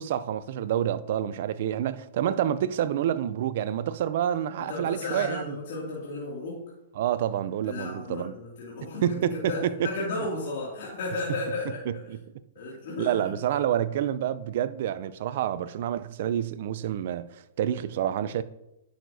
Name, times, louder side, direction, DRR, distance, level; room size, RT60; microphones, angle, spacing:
voice 1, 0.0-5.6 7.0-8.3 9.0-9.9 11.9-12.2 13.0-18.4, right 10 dB, 60° right, 0.5 m, -28 dB
voice 2, 4.6-6.7 7.6-11.8 12.5-13.3, left 2 dB, 65° left, 2.4 m, -34 dB
10.0 x 6.5 x 2.7 m
hypercardioid pair, 130°, 0 cm